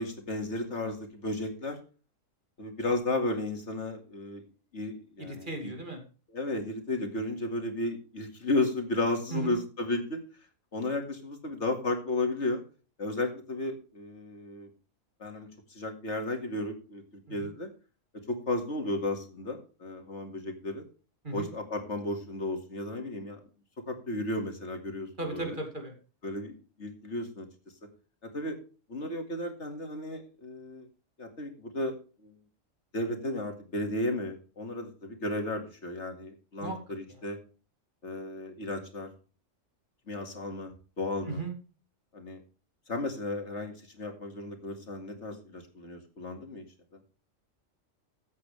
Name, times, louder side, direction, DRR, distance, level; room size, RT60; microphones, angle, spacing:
voice 1, 0.0-1.8 2.6-4.4 4.7-5.7 6.3-10.2 10.7-12.6 13.0-14.7 15.2-17.0 17.3-17.7 18.3-20.8 21.3-23.4 23.9-25.6 26.2-27.5 28.3-28.6 28.9-30.9 31.2-32.0 32.2-32.3 32.9-37.4 38.0-39.1 40.1-41.4 42.1-42.4 42.9-46.6, left 2 dB, 60° left, 5 dB, 2.4 m, -34 dB
voice 2, 5.2-6.0 9.3-9.6 17.3-17.5 21.2-21.5 25.2-25.9 36.6-36.8 37.1-37.2 41.3-41.5, right 2 dB, 40° right, 3 dB, 2.8 m, -36 dB
15.0 x 8.3 x 3.3 m, 0.35 s
omnidirectional pair, 1.3 m